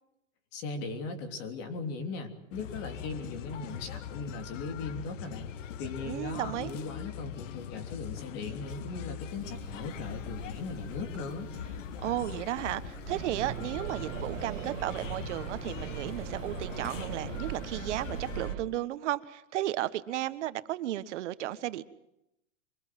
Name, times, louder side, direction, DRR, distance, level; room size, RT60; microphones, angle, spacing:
voice 1, 0.5-5.5 5.8-11.5, left 4 dB, 40° left, 5 dB, 3.3 m, -38 dB
sound 1, 2.5-18.5, left 9 dB, 75° left, 1.3 m, -42 dB
voice 2, 6.0-6.7 12.0-21.8, right 14 dB, 65° right, 13 dB, 1.5 m, -34 dB
sound 2, 9.3-18.4, right 10 dB, 30° right, 2.9 m, -49 dB
sound 3, 13.1-18.6, right 10 dB, 80° right, 2.2 m, -39 dB
24.5 x 21.0 x 7.7 m, 0.84 s
supercardioid pair, 155°, 38 cm